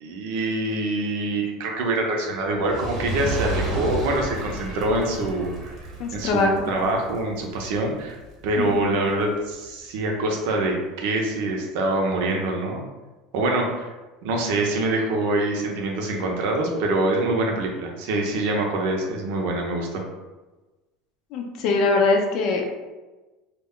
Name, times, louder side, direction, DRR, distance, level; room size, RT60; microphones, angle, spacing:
voice 1, 0.0-5.7 6.1-8.2 8.4-12.8 13.3-13.9 14.2-20.0, right 2 dB, 70° right, 1 dB, 0.6 m, -25 dB
Fire, 2.5-9.0 9.6-9.7, right 2 dB, 35° right, 0.8 m, -32 dB
voice 2, 6.0-6.7 8.6-9.0 21.3-22.6, left 3 dB, 55° left, 2 dB, 0.5 m, -22 dB
2.3 x 2.1 x 3.6 m, 1.2 s
supercardioid pair, 135°, 0 cm